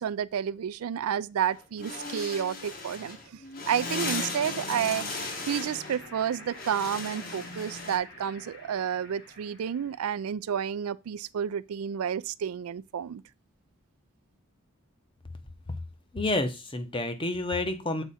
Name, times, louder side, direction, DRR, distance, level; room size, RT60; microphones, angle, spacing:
voice 1, 0.0-3.2 3.7-5.0 5.5-13.2, right 8 dB, 85° right, 0.4 m, -30 dB
sound 1, 1.5-8.0, left 3 dB, 40° left, 1.4 m, -37 dB
sound 2, 4.8-10.2, left 2 dB, 65° left, 2.9 m, -48 dB
voice 2, 16.1-18.0, left 2 dB, 25° left, 0.8 m, -29 dB
7.0 x 4.8 x 4.2 m
head